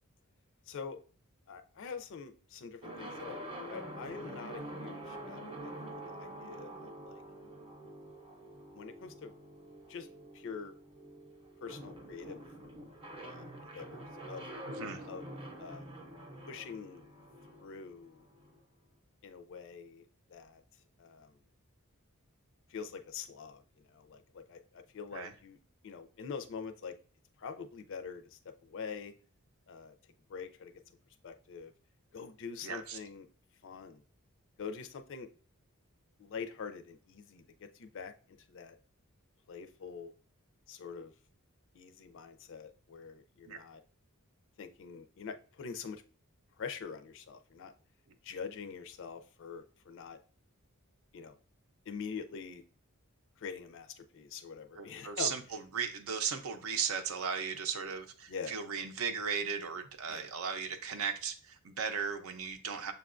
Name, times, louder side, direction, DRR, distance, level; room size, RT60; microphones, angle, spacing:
voice 1, 0.7-1.0 1.5-7.2 8.7-9.4 9.9-10.1 10.3-10.7 11.6-12.4 13.2-14.4 15.1-15.2 15.6-15.9 16.5-17.1 17.6-18.2 19.2-20.0 20.3-20.6 21.0-21.3 22.7-23.6 23.9-25.6 25.8-26.9 27.4-29.1 29.7-29.9 30.3-30.8 31.2-31.7 32.1-33.3 33.6-34.0 34.6-35.3 36.2-38.1 38.5-38.8 39.5-40.1 40.7-41.1 41.7-43.8 44.6-46.0 46.6-47.7 48.2-50.2 51.1-51.3 51.9-52.6 53.4-55.3 58.3-58.5 60.1-60.3, left 5 dB, 60° left, 0.4 m, -44 dB
sound 1, 2.8-18.6, right 1 dB, 25° right, 0.6 m, -46 dB
voice 2, 14.6-15.0 25.1-25.3 32.6-33.0 43.5-43.6 54.8-62.9, right 6 dB, 70° right, 0.6 m, -36 dB
6.6 x 2.3 x 2.4 m
head